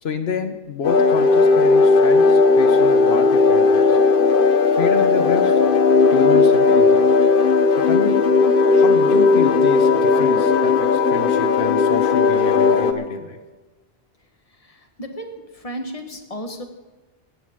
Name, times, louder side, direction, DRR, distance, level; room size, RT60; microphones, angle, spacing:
voice 1, 0.0-4.0 4.7-5.7 6.1-7.1 7.8-8.3 8.8-13.4, left 5 dB, 85° left, 8 dB, 1.4 m, -28 dB
sound 1, 0.8-12.9, left 4 dB, 60° left, 1.1 m, -16 dB
voice 2, 14.7-16.6, equal, 35° left, 5 dB, 1.5 m, -34 dB
18.0 x 14.0 x 3.7 m, 1.2 s
omnidirectional pair, 1.0 m